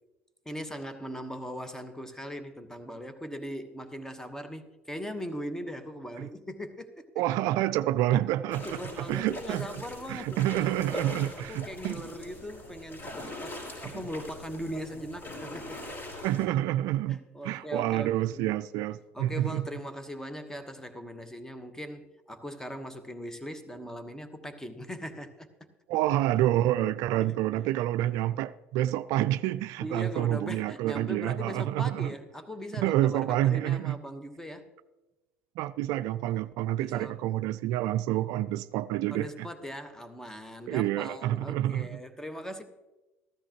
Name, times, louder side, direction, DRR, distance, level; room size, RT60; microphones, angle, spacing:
voice 1, 0.4-7.1 8.6-10.5 10.9-15.8 17.1-18.4 19.1-25.7 27.3-27.4 29.8-34.6 36.8-37.2 39.1-42.6, equal, 10° left, 1.2 m, -40 dB
voice 2, 7.2-12.0 13.8-14.0 16.2-19.7 25.9-32.1 32.8-34.0 35.6-39.5 40.7-42.0, right 14 dB, 65° right, 0.3 m, -28 dB
sound 1, 8.5-16.5, left 1 dB, 40° left, 4.5 m, -42 dB
14.5 x 13.0 x 3.0 m
hypercardioid pair, 75°, 7 cm